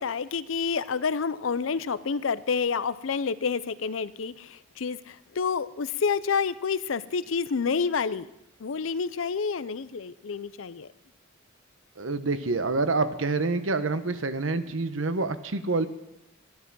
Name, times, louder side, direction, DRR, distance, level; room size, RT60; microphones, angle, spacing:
voice 1, 0.0-8.3 8.6-10.9, left 5 dB, 85° left, 17 dB, 0.6 m, -29 dB
voice 2, 12.0-15.9, right 3 dB, 80° right, 11 dB, 1.0 m, -27 dB
12.5 x 12.0 x 6.1 m, 0.87 s
head